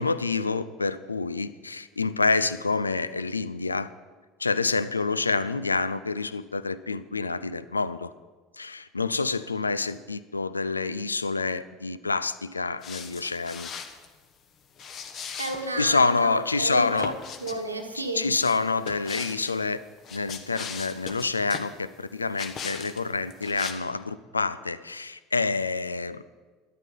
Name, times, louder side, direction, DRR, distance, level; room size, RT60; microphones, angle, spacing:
voice 1, 0.0-3.9 4.4-8.1 8.6-13.7 15.8-17.1 18.1-19.8 20.1-26.2, left 4 dB, 80° left, 15 dB, 0.4 m, -27 dB
sound 1, 12.8-14.1 14.8-15.9 16.6-17.6 18.3-19.5 20.0-21.7 22.3-23.0 23.3-23.7, left 6 dB, 40° left, 1.2 m, -38 dB
voice 2, 15.3-17.1 17.4-18.3, right 1 dB, 85° right, 5 dB, 1.2 m, -32 dB
12.5 x 10.5 x 5.4 m, 1.3 s
figure-of-eight pair, 70°, 0 cm